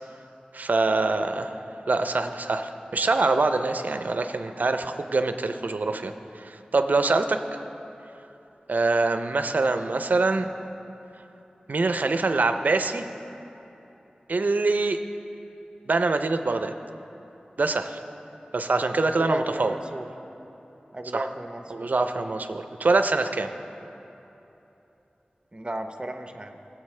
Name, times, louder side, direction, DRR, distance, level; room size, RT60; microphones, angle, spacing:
voice 1, 0.5-1.6 1.9-7.4 8.7-10.5 11.7-13.0 14.3-15.0 15.9-16.7 17.6-18.0 18.5-19.7 21.1-21.2 21.7-23.5, right 3 dB, 65° right, 8 dB, 0.5 m, -24 dB
voice 2, 19.1-20.1 20.9-21.9 25.5-26.5, right 1 dB, 30° right, 6 dB, 0.7 m, -34 dB
18.0 x 7.9 x 3.3 m, 3.0 s
wide cardioid pair, 60°, 3 cm